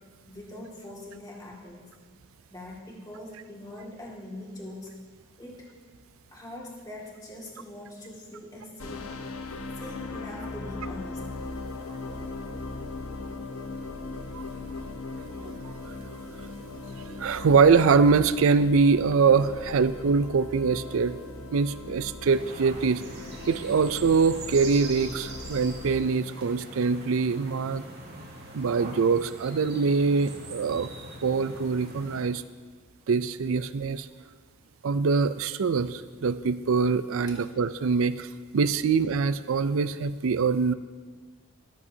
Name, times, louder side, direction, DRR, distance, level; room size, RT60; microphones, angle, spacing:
voice 1, 0.3-1.9 2.5-4.9 5.4-5.6 6.3-9.2 9.8-11.2, left 1 dB, 15° left, -4 dB, 2.0 m, -42 dB
sound 1, 8.8-26.0, left 2 dB, 80° left, 0.8 m, -39 dB
voice 2, 14.1-14.5 15.4-15.9 17.2-21.2 21.5-23.0 23.5-27.8 28.5-30.9 31.2-32.4 33.1-34.1 34.8-38.3 38.5-40.7, right 5 dB, 70° right, 14 dB, 0.4 m, -24 dB
sound 2, 22.2-32.2, right 2 dB, 45° right, 2.0 m, -42 dB
13.5 x 13.5 x 2.8 m, 1.5 s
head